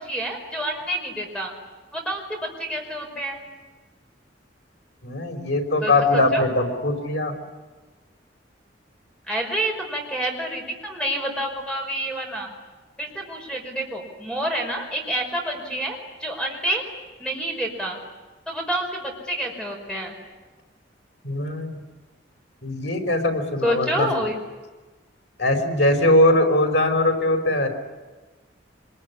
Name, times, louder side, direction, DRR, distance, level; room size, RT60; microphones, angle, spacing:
voice 1, 0.0-1.5 1.9-3.4 5.8-6.4 9.3-12.5 13.0-16.8 17.2-18.0 18.5-20.1 23.6-24.4, right 1 dB, 5° left, 1 dB, 5.4 m, -28 dB
voice 2, 5.0-7.3 21.2-21.7 22.6-24.3 25.4-27.7, left 1 dB, 75° left, 4 dB, 5.3 m, -21 dB
27.0 x 22.0 x 9.9 m, 1.3 s
head